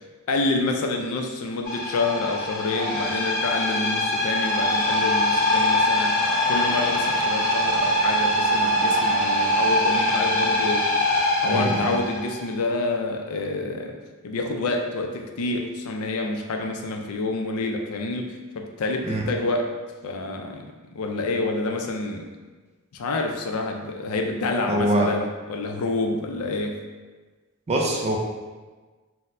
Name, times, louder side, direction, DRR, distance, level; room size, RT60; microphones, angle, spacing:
voice 1, 0.3-6.2 6.5-10.9 11.4-14.0 14.2-19.7 20.0-22.3 22.9-26.8, left 2 dB, 80° left, 3 dB, 0.4 m, -28 dB
sound 1, 1.7-12.4, left 1 dB, 40° left, 0.7 m, -23 dB
voice 2, 11.5-11.9 19.0-19.2 24.7-25.1 27.7-28.2, right 1 dB, 30° right, 0 dB, 0.4 m, -23 dB
4.0 x 2.1 x 2.6 m, 1.3 s
head